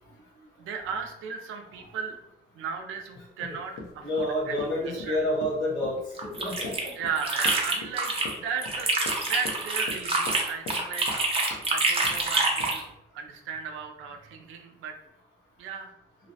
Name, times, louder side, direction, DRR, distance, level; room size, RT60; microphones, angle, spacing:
voice 1, 0.6-2.2 2.6-4.6 4.8-5.2 7.0-11.1 11.7-12.8 13.1-15.0 15.6-15.9, right 6 dB, 85° right, 4 dB, 0.4 m, -35 dB
Run, 3.7-10.8 11.1-11.7 12.0-12.3 12.6-12.7, left 3 dB, 90° left, 0.6 m, -41 dB
voice 2, 4.0-6.9, left 1 dB, 70° left, -3 dB, 1.2 m, -29 dB
sound 1, 6.2-8.3 8.6-12.8, right 2 dB, 30° right, 0.6 m, -27 dB
2.6 x 2.0 x 2.7 m, 0.82 s
cardioid pair, 90°, 20 cm